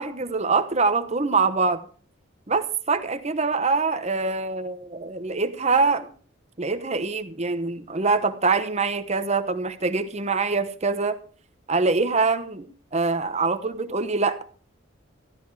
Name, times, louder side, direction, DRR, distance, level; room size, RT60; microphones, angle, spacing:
voice 1, 0.0-1.8 2.5-6.1 6.6-11.2 11.7-12.7 12.9-14.4, right 4 dB, 30° right, 10 dB, 1.0 m, -24 dB
14.0 x 12.0 x 4.8 m, 0.40 s
head